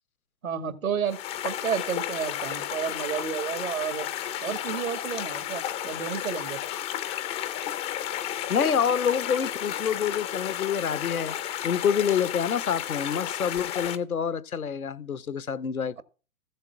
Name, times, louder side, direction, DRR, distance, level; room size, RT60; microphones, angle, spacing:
voice 1, 0.4-1.2 1.4-4.1 4.4-6.6 16.0-16.1, right 7 dB, 75° right, 2.2 m, -31 dB
sound 1, 1.1-14.0, left 11 dB, 15° left, 0.5 m, -33 dB
voice 2, 8.5-11.3 11.6-16.0, left 7 dB, 80° left, 0.9 m, -27 dB
14.5 x 7.5 x 4.8 m
figure-of-eight pair, 115°, 42 cm